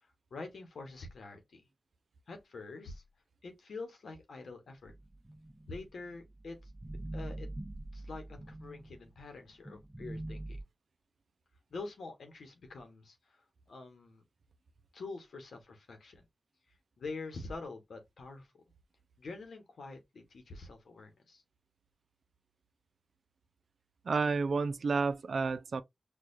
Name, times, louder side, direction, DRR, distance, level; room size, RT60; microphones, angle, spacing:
voice 1, 0.3-1.7 2.3-3.0 3.4-4.9 5.7-6.6 7.1-7.5 7.9-10.6 11.7-13.4 13.7-14.2 14.9-16.3 17.0-18.5 19.2-21.4, left 3 dB, 80° left, 1.0 m, -46 dB
sound 1, 4.9-9.2 9.6-10.6, right 1 dB, 25° right, 0.9 m, -44 dB
voice 2, 24.0-25.8, right 4 dB, 75° right, 0.4 m, -30 dB
4.5 x 2.3 x 2.5 m
cardioid pair, 45°, 0 cm